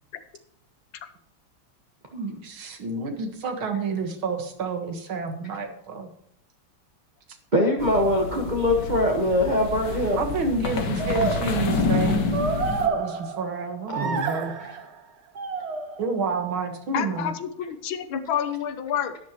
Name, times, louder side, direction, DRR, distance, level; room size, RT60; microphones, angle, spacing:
voice 1, 2.1-6.1 10.2-12.2 12.9-14.6 16.0-17.3, right 4 dB, 80° right, 5 dB, 2.5 m, -29 dB
voice 2, 7.5-10.2 13.9-14.3, left 1 dB, 25° right, -1 dB, 1.4 m, -22 dB
sound 1, 7.8-12.9, left 4 dB, 60° left, 1.8 m, -28 dB
sound 2, 9.8-10.2 11.0-13.6 13.9-14.9 15.4-16.3, right 4 dB, 45° right, 0.9 m, -29 dB
voice 3, 16.9-19.2, left 9 dB, 75° left, 10 dB, 1.7 m, -28 dB
12.0 x 10.5 x 3.1 m, 0.77 s
omnidirectional pair, 2.2 m